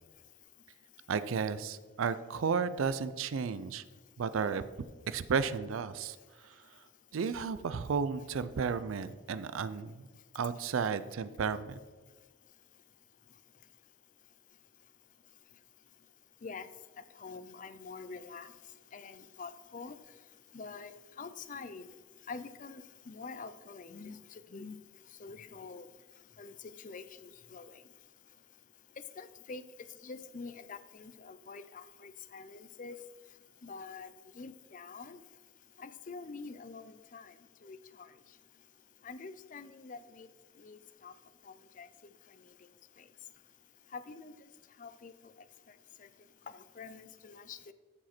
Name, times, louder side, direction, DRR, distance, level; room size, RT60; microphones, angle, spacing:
voice 1, 1.1-3.8 4.2-4.7 5.1-6.8 7.1-10.1 10.3-11.8, right 5 dB, 80° right, 14 dB, 0.4 m, -33 dB
voice 2, 17.2-18.5 18.9-20.0 20.5-21.9 22.3-24.2 24.5-24.7 25.2-25.9 26.4-26.5 26.8-27.7 29.2-29.6 30.0-33.0 33.6-34.1 34.4-35.2 35.8-37.3 37.6-37.8 39.0-40.3 40.6-41.1 41.8-41.9 43.9-44.3 44.8-45.1 46.8-47.7, left 4 dB, 40° left, 13 dB, 0.5 m, -46 dB
14.0 x 5.0 x 4.4 m, 1.4 s
head